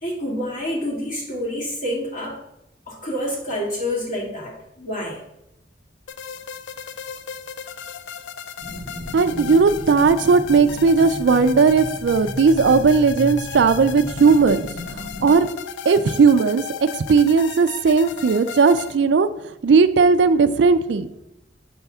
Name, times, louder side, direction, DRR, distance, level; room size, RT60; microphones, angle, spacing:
voice 1, 0.0-2.4 2.9-5.2, left 1 dB, 45° left, -3 dB, 2.0 m, -28 dB
sound 1, 6.1-19.0, left 8 dB, 85° left, 0.4 m, -36 dB
sound 2, 8.6-15.3, equal, 25° left, 1.3 m, -34 dB
voice 2, 9.1-15.5 15.9-19.3 19.6-21.1, right 4 dB, 70° right, 12 dB, 0.4 m, -17 dB
6.9 x 3.5 x 5.5 m, 0.84 s
head